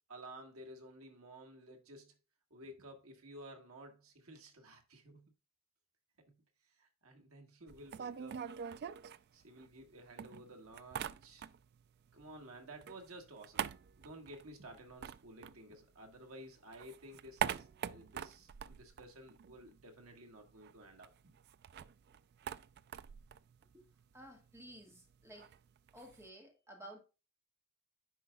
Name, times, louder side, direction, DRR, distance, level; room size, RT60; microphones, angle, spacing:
voice 1, 0.1-2.2 2.5-5.3 6.3-6.4 6.7-8.4 9.3-11.5 12.1-21.3, right 1 dB, 85° right, 1.6 m, -54 dB
sound 1, 7.7-9.9 10.2-11.8 12.1-16.2 16.6-19.9 20.1-20.2 20.5-26.3, right 8 dB, 50° right, 0.3 m, -44 dB
voice 2, 24.1-25.5 25.9-27.0, right 1 dB, 10° right, 1.6 m, -54 dB
9.9 x 4.8 x 2.3 m
head